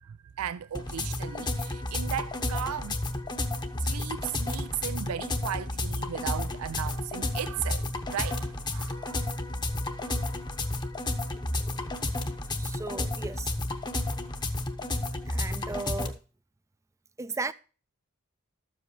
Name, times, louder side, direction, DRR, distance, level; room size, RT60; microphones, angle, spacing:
voice 1, 0.0-3.0 3.8-9.4 10.0-10.2, right 9 dB, 80° right, 0.4 m, -36 dB
sound 1, 0.7-16.1, left 2 dB, 20° left, 0.9 m, -32 dB
voice 2, 12.5-13.5 15.3-16.2 17.2-17.5, right 3 dB, 15° right, 0.5 m, -36 dB
13.0 x 7.7 x 3.1 m
head